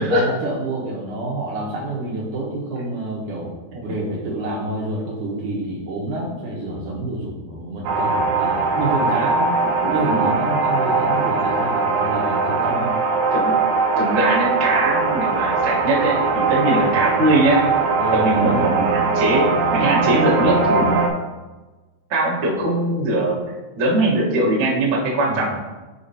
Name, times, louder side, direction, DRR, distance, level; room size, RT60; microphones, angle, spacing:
voice 1, 0.0-3.5 3.8-9.5 9.9-12.9 16.8-16.9 18.0-18.7 25.2-25.5, right 2 dB, 70° right, -3 dB, 2.2 m, -28 dB
sound 1, 7.9-21.1, right 4 dB, 90° right, 2.7 m, -20 dB
voice 2, 9.8-10.3 13.3-13.5 14.0-17.6 18.1-21.0 22.1-23.4 23.7-25.6, right 2 dB, 55° right, -5 dB, 1.4 m, -21 dB
8.3 x 5.1 x 2.8 m, 1.2 s
omnidirectional pair, 4.4 m